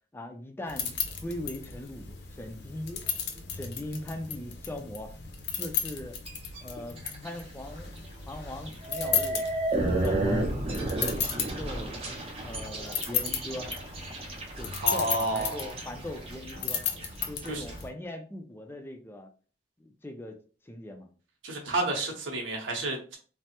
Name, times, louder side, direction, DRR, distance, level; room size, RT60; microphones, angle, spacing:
voice 1, 0.1-5.1 5.6-6.2 6.6-7.9 8.3-9.4 9.8-10.5 10.9-13.7 14.6-16.8 17.2-19.3 19.8-20.4 20.6-21.1, left 1 dB, 10° left, 4 dB, 0.3 m, -40 dB
sound 1, 0.7-17.9, left 8 dB, 60° left, 0.5 m, -35 dB
sound 2, 6.3-6.6 7.0-7.4 7.8-7.9 8.7-17.7, right 2 dB, 30° right, 0.6 m, -32 dB
voice 2, 14.8-15.7 17.5-17.6 21.4-23.2, right 1 dB, 85° right, 1 dB, 0.8 m, -30 dB
3.2 x 2.0 x 2.8 m, 0.39 s
head